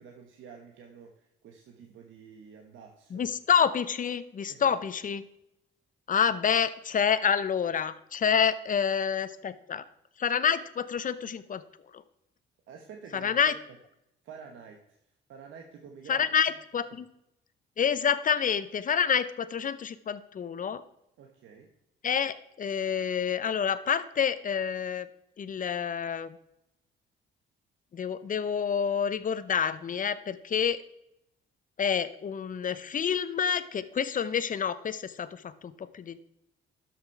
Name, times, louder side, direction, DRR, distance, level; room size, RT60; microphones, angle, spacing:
voice 1, 0.0-3.3 4.5-4.8 12.7-13.8 14.2-15.0 15.3-16.6 21.2-21.7, right 6 dB, 75° right, 3 dB, 1.2 m, -49 dB
voice 2, 3.1-5.2 6.1-9.8 10.2-11.6 11.9-12.0 13.1-13.5 16.1-17.1 17.8-20.8 22.0-25.1 25.4-26.4 27.9-30.8 31.8-36.2, left 7 dB, 40° left, 14 dB, 0.7 m, -28 dB
12.5 x 6.0 x 4.6 m, 0.81 s
cardioid pair, 90°, 20 cm